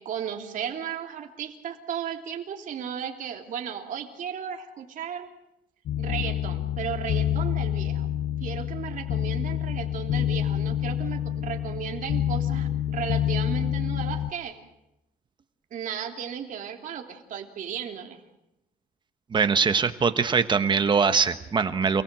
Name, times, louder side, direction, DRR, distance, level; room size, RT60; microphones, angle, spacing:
voice 1, 0.0-5.3 6.0-8.1 8.4-14.6 15.7-18.2, right 8 dB, 55° right, 3 dB, 3.1 m, -35 dB
sound 1, 5.9-14.3, left 11 dB, 70° left, 1.1 m, -27 dB
voice 2, 19.3-22.0, right 5 dB, 30° right, 10 dB, 1.2 m, -22 dB
28.5 x 20.0 x 7.6 m, 0.88 s
cardioid pair, 160°, 16 cm